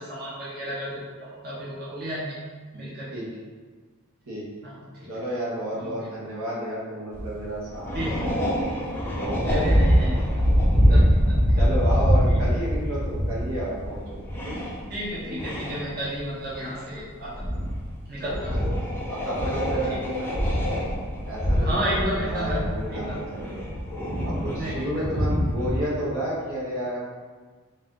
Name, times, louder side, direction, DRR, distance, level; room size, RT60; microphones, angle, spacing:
voice 1, 0.0-2.4 2.7-3.1 4.6-5.1 5.7-5.9 7.9-8.3 9.4-10.2 10.7-11.0 11.3-11.4 12.3-12.4 14.9-17.3 18.1-18.5 21.6-22.6 22.9-23.2 24.6-25.0, equal, 45° right, -8 dB, 1.0 m, -32 dB
voice 2, 5.1-8.5 9.1-10.2 10.8-11.0 11.6-14.6 18.2-18.7 19.1-20.5 21.2-23.7 24.2-27.0, right 1 dB, 75° right, -6 dB, 1.2 m, -32 dB
sound 1, 7.1-7.4 7.7-16.2 16.5-16.9 17.4-17.9 18.3-25.8, equal, 10° left, 0.6 m, -24 dB
4.1 x 2.6 x 3.7 m, 1.4 s
head